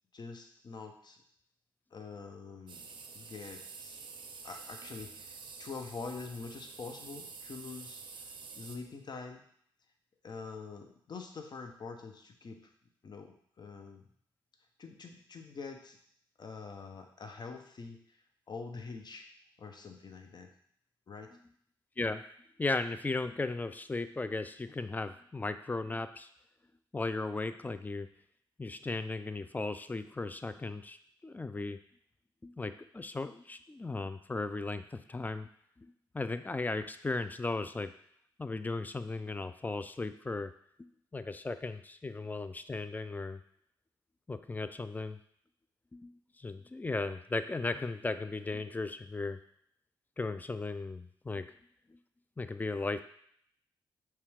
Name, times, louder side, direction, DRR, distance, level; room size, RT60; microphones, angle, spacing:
voice 1, 0.1-1.2 1.9-2.9 3.1-4.0 4.4-8.3 8.6-9.4 10.2-12.7 13.0-14.0 14.8-16.0 16.4-18.2 18.5-19.3 19.6-20.5 21.1-21.4, left 4 dB, 50° left, 4 dB, 0.7 m, -45 dB
sound 1, 2.7-8.8, right 5 dB, 60° right, 0.5 m, -48 dB
voice 2, 22.6-26.3 26.9-28.1 28.6-31.0 31.2-31.8 32.4-35.5 35.8-37.9 38.4-40.5 40.8-43.4 44.3-45.2 45.9-49.4 50.2-51.5 51.9-52.0 52.4-53.0, left 3 dB, 20° left, 11 dB, 0.3 m, -36 dB
5.6 x 2.4 x 3.3 m, 0.64 s
supercardioid pair, 55°, 9 cm